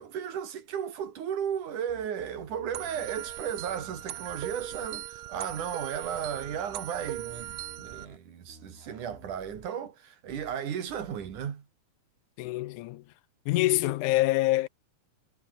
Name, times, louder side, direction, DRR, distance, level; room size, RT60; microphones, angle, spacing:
voice 1, 0.0-11.7, right 8 dB, 90° right, 3.9 m, -35 dB
sound 1, 1.9-3.4 3.7-4.9 5.5-5.8 6.1-8.2 8.5-9.7 10.3-10.6 10.9-11.5, right 2 dB, 20° right, 5.4 m, -53 dB
sound 2, 2.7-8.0, right 14 dB, 70° right, 2.1 m, -39 dB
voice 2, 12.4-13.0 13.5-14.7, left 17 dB, 90° left, 2.2 m, -25 dB
omnidirectional pair, 3.4 m